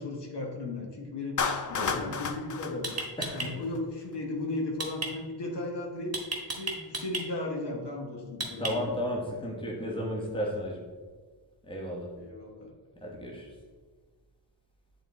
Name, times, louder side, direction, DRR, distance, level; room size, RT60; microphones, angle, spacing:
voice 1, 0.0-1.4 1.7-2.9 3.3-6.1 6.5-9.0 12.2-12.7, left 2 dB, 70° left, 1 dB, 1.2 m, -36 dB
Clapping, 1.4-3.8, left 5 dB, 45° left, 0.5 m, -32 dB
voice 2, 1.7-2.1 3.2-3.5 8.6-10.9 11.6-12.1 13.0-13.5, equal, 10° left, -2 dB, 1.1 m, -34 dB
sound 1, 2.8-3.5 4.8-5.1 6.1-7.2 8.4-9.0, right 3 dB, 35° right, 1.2 m, -33 dB
8.9 x 3.9 x 3.5 m, 1.4 s
wide cardioid pair, 150°, 43 cm